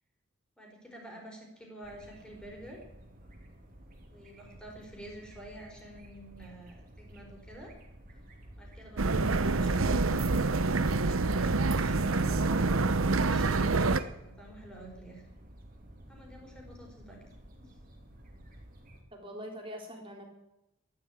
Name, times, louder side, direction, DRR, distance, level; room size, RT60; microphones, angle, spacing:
voice 1, 0.6-2.8 4.1-7.7 8.6-10.3 10.7-13.9 14.2-15.2 16.1-17.3 17.6-17.7, right 1 dB, 5° left, 0 dB, 4.5 m, -48 dB
sound 1, 1.8-19.0, right 1 dB, 40° right, 3.1 m, -52 dB
sound 2, 9.0-14.0, right 3 dB, 85° right, 0.9 m, -26 dB
voice 2, 19.1-20.3, equal, 25° right, 1 dB, 3.6 m, -43 dB
14.0 x 11.5 x 8.5 m, 0.91 s
head